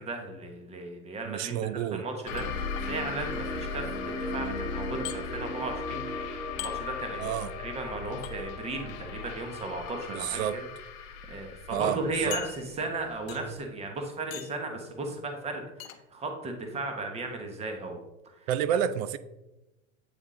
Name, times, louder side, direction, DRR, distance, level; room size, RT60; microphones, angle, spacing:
voice 1, 0.0-1.5 1.9-4.0 4.3-6.1 6.6-7.3 7.6-10.7 11.3-18.0 18.7-18.8, right 3 dB, 15° right, 0.8 m, -35 dB
voice 2, 1.3-2.0 7.2-7.5 10.1-10.6 11.7-12.0 12.2-12.4 18.5-19.2, right 10 dB, 70° right, 0.6 m, -29 dB
sound 1, 2.3-2.9 5.0-5.2 6.6-6.8 8.2-8.3 9.7-10.0 10.7-10.8 11.2-11.3 12.3-12.9 13.3-13.6 14.3-14.6 15.8-16.0, left 14 dB, 70° left, 0.7 m, -40 dB
sound 2, 2.3-13.5, left 3 dB, 50° left, 1.2 m, -36 dB
8.3 x 3.5 x 3.6 m
supercardioid pair, 140°, 42 cm